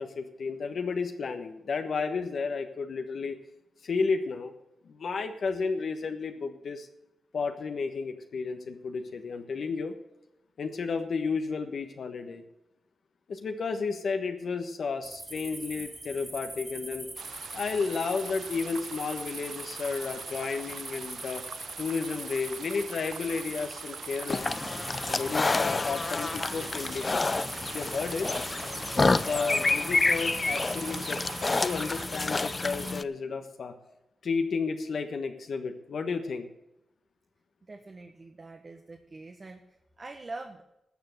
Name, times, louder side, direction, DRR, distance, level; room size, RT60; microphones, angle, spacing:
voice 1, 0.0-3.4 3.8-4.5 4.8-6.9 7.3-9.9 10.6-12.4 13.3-17.1 17.5-21.4 21.8-24.5 25.1-27.3 27.7-28.3 29.0-31.2 31.6-33.7 34.2-36.5, left 4 dB, 70° left, 5 dB, 1.2 m, -32 dB
sound 1, 15.0-32.9, right 2 dB, 20° right, 0.9 m, -42 dB
sound 2, 17.2-32.1, right 7 dB, 80° right, 0.5 m, -45 dB
sound 3, 24.3-33.0, left 3 dB, 35° left, 0.5 m, -28 dB
voice 2, 37.7-39.6 40.0-40.6, right 3 dB, 40° right, 3 dB, 1.5 m, -43 dB
13.0 x 6.9 x 7.8 m, 0.90 s
cardioid pair, 60°, 0 cm